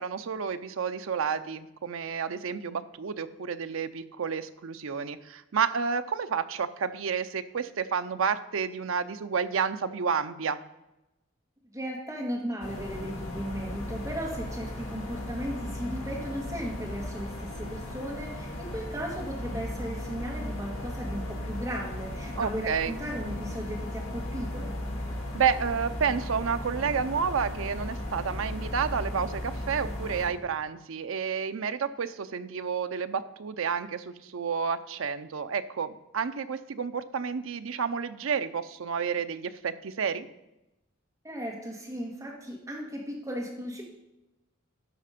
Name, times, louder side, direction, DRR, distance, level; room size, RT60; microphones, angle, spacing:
voice 1, 0.0-10.6 22.4-22.9 25.3-40.3, right 6 dB, 75° right, 11 dB, 0.5 m, -30 dB
voice 2, 11.7-24.7 41.2-43.8, equal, 15° right, -2 dB, 1.5 m, -36 dB
sound 1, 12.6-30.3, left 1 dB, 85° left, 2.1 m, -36 dB
12.0 x 5.0 x 5.1 m, 0.95 s
head